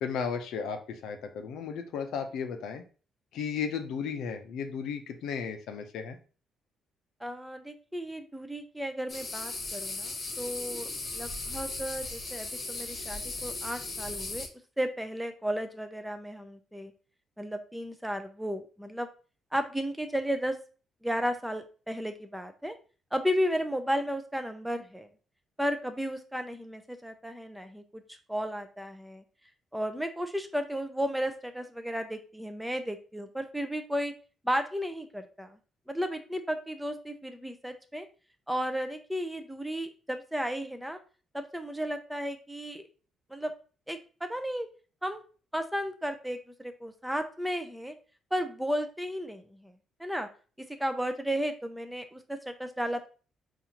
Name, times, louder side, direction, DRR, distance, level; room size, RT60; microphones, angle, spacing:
voice 1, 0.0-2.8 3.3-6.2, left 6 dB, 80° left, 6 dB, 0.5 m, -34 dB
voice 2, 7.2-14.5 14.8-16.9 17.4-19.1 19.5-20.6 21.0-22.8 23.1-25.1 25.6-29.2 29.7-34.1 34.4-35.6 35.9-38.1 38.5-41.0 41.3-42.8 43.3-43.5 43.9-44.7 45.0-45.2 45.5-47.9 48.3-49.7 50.0-50.3 50.8-53.1, equal, 5° right, 7 dB, 0.5 m, -34 dB
sound 1, 9.1-14.5, left 3 dB, 40° left, 1.0 m, -37 dB
4.0 x 2.5 x 2.8 m, 0.37 s
cardioid pair, 90°, 0 cm